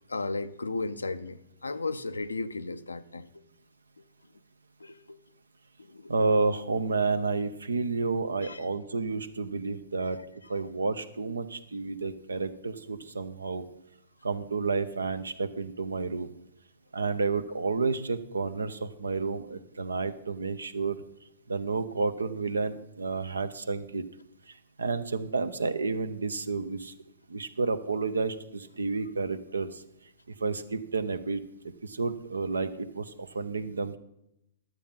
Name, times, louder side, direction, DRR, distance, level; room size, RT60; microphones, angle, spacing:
voice 1, 0.1-3.4 4.8-5.2 5.8-6.1 8.4-8.6 10.0-10.1 10.5-10.6 17.7-17.8, left 3 dB, 85° left, 0.6 m, -35 dB
voice 2, 6.1-10.2 10.5-13.7 14.2-16.3 16.9-21.0 21.5-24.0 24.5-26.9 27.3-29.8 30.4-31.4 31.8-34.0, right 4 dB, 80° right, 0.7 m, -30 dB
11.5 x 7.6 x 5.5 m
figure-of-eight pair, 115°, 0 cm